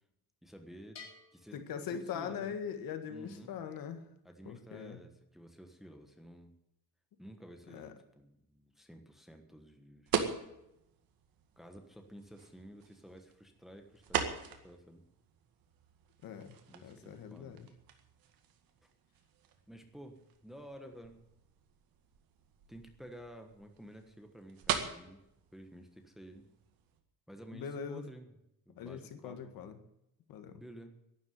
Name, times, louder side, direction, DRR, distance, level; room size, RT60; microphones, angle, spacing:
voice 1, 0.4-1.1 1.3-1.6 1.9-2.6 3.1-3.5 4.2-6.5 7.2-10.1 11.6-15.0 16.7-17.5 19.7-21.2 22.7-25.2 25.5-26.5 27.3-28.3 28.7-29.5 30.6-31.0, equal, ahead, 5 dB, 1.3 m, -52 dB
Bell, 1.0-2.7, left 5 dB, 45° left, 3.9 m, -55 dB
voice 2, 1.5-4.0 4.5-5.0 7.7-7.9 16.2-16.6 16.8-17.7 27.5-28.0 28.8-29.8 30.3-30.6, left 7 dB, 65° left, 8 dB, 1.8 m, -41 dB
sound 1, 10.1-27.0, right 8 dB, 65° right, 2.0 m, -42 dB
12.0 x 11.0 x 9.4 m, 0.82 s
cardioid pair, 175°, 38 cm